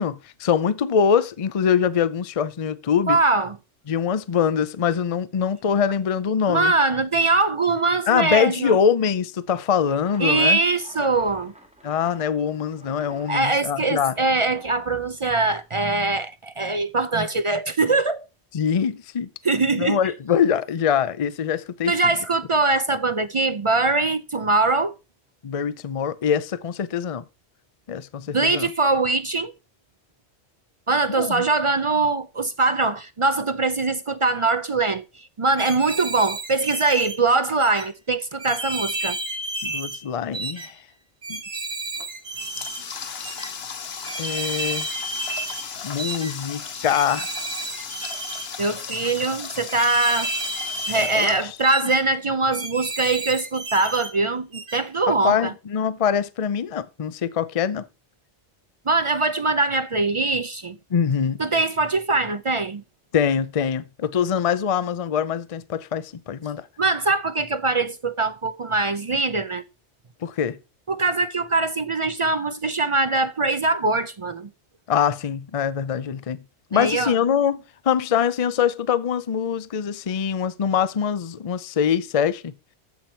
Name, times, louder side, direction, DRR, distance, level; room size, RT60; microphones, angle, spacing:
voice 1, 0.0-3.2 3.9-6.7 8.1-10.6 11.8-14.1 18.5-19.3 19.8-21.9 25.4-27.2 27.9-28.7 31.1-31.5 39.6-40.8 41.3-41.4 44.2-44.9 45.8-47.3 51.0-51.6 55.2-57.9 60.9-61.4 63.1-66.7 70.2-70.6 74.9-76.4 76.7-82.5, left 7 dB, 40° left, 0.5 m, -23 dB
voice 2, 3.1-3.6 6.5-8.8 10.2-11.5 13.3-18.2 19.4-20.0 21.9-24.9 28.3-29.5 30.9-39.2 48.6-50.3 50.9-55.5 58.9-60.8 61.4-62.8 66.8-69.6 70.9-74.5 76.7-77.2, right 3 dB, 40° right, 0.4 m, -22 dB
sound 1, 9.8-15.7, equal, 5° right, 1.7 m, -49 dB
sound 2, 35.6-37.2 37.6-37.9 38.4-40.0 40.3-40.7 41.2-42.8 43.2-43.5 44.0-45.7 46.0-46.3 46.9-48.5 48.9-49.2 49.7-51.3 51.6-52.0 52.5-54.1 54.5-54.8, right 2 dB, 55° right, 1.7 m, -31 dB
Water tap faucet, 42.0-52.2, left 6 dB, 65° left, 1.2 m, -36 dB
14.5 x 6.0 x 4.5 m
omnidirectional pair, 1.2 m